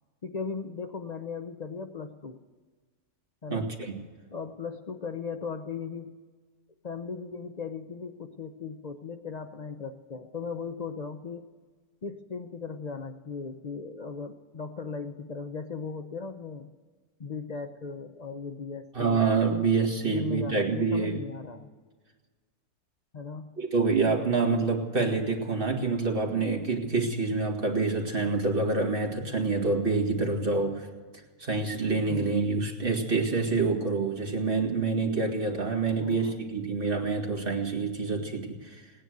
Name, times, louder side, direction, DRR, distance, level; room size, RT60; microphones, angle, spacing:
voice 1, 0.2-2.4 3.4-3.7 4.3-6.1 6.8-11.4 12.0-16.7 17.2-19.6 20.1-21.7 23.1-23.5 32.1-32.4 35.9-36.4, left 5 dB, 40° left, 6 dB, 0.6 m, -37 dB
voice 2, 3.5-3.9 18.9-21.2 23.6-30.9 31.4-38.9, right 4 dB, 35° right, 0 dB, 2.3 m, -27 dB
18.0 x 9.9 x 7.8 m, 1.5 s
omnidirectional pair, 1.6 m